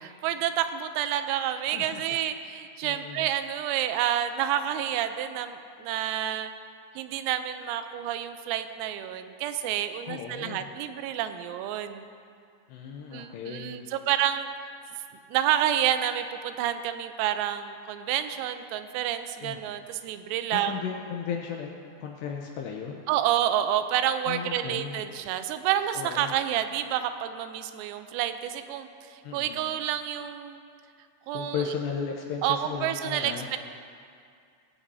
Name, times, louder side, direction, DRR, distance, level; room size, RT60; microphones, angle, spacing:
voice 1, 0.0-6.5 7.0-12.1 13.1-14.5 15.3-20.7 23.1-30.6 31.3-31.7 32.4-33.6, right 11 dB, 85° right, 9 dB, 3.4 m, -29 dB
voice 2, 2.8-3.3 10.1-10.7 12.7-13.8 19.4-19.6 20.5-23.0 24.3-25.0 26.0-26.3 29.2-29.6 31.3-33.5, left 6 dB, 85° left, 1 dB, 2.5 m, -35 dB
20.5 x 15.5 x 2.8 m, 2.3 s
omnidirectional pair, 5.9 m